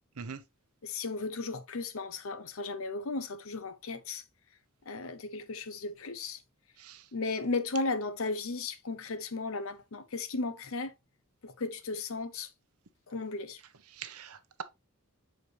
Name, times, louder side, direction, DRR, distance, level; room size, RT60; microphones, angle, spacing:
voice 1, 0.8-4.2 4.9-6.4 7.1-10.9 11.4-12.5 13.1-13.6, left 3 dB, 65° left, 0.7 m, -35 dB
voice 2, 14.0-14.6, right 6 dB, 90° right, 0.8 m, -42 dB
6.7 x 4.3 x 3.2 m
head